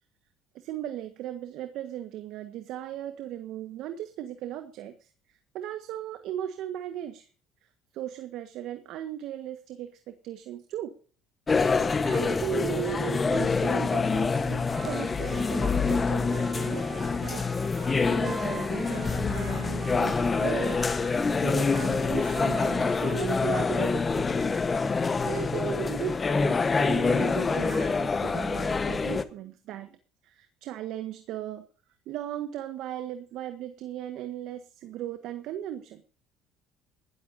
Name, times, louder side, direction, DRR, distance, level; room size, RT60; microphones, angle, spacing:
voice 1, 0.5-7.3 7.9-10.9 11.6-17.4 17.7-20.9 21.4-24.3 25.2-30.0 30.2-31.6 32.1-36.0, right 11 dB, 70° right, 8 dB, 1.6 m, -37 dB
sound 1, 11.5-29.2, left 4 dB, 25° left, 1.2 m, -26 dB
Trumpet, 14.7-23.2, right 5 dB, 40° right, 6.8 m, -44 dB
20.0 x 13.5 x 2.8 m, 0.39 s
cardioid pair, 105°, 0 cm